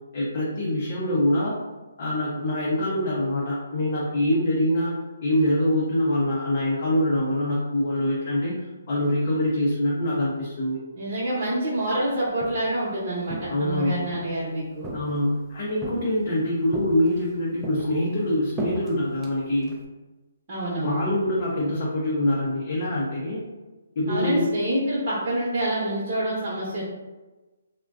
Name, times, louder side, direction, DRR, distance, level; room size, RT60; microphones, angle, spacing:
voice 1, 0.1-1.6 2.0-4.9 5.2-8.5 8.9-10.8 13.5-14.0 14.9-19.7 20.8-23.4 24.0-24.5, left 1 dB, 45° left, -5 dB, 0.6 m, -24 dB
voice 2, 10.9-14.9 20.5-21.0 24.1-26.9, right 1 dB, 35° right, -11 dB, 0.8 m, -27 dB
Walk footsteps, 12.2-12.8 13.3-14.3 14.8-15.4 15.8-16.3 16.7-17.3 17.6-19.8, right 1 dB, 10° right, 0.4 m, -36 dB
2.4 x 2.1 x 2.3 m, 1.2 s
hypercardioid pair, 150°, 0 cm